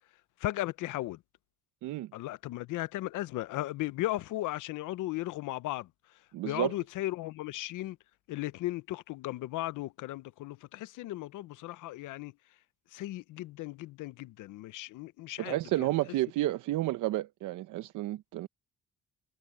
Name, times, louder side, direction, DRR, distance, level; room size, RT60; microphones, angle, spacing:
voice 1, 0.4-1.2 2.1-5.9 6.4-8.0 8.3-12.3 12.9-15.9 16.4-16.5, left 16 dB, 90° left, 0.8 m, -36 dB
voice 2, 6.3-6.7 15.4-18.5, right 16 dB, 85° right, 0.8 m, -31 dB
cardioid pair, 90°, 30 cm